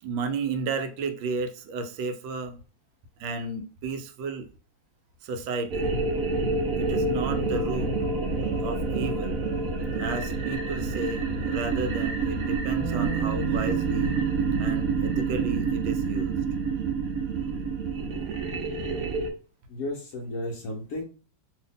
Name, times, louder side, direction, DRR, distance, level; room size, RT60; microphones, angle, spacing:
voice 1, 0.0-2.6 3.2-4.5 5.2-5.9 6.8-7.9 8.6-9.4 10.0-14.1 14.6-16.3 18.7-19.2, right 4 dB, 90° right, 1.3 m, -33 dB
sound 1, 5.7-19.3, right 4 dB, 70° right, 0.8 m, -28 dB
Bass guitar, 12.8-19.0, right 14 dB, 45° right, 1.1 m, -39 dB
voice 2, 19.7-21.0, left 1 dB, 80° left, 0.7 m, -33 dB
2.7 x 2.7 x 3.6 m
omnidirectional pair, 2.0 m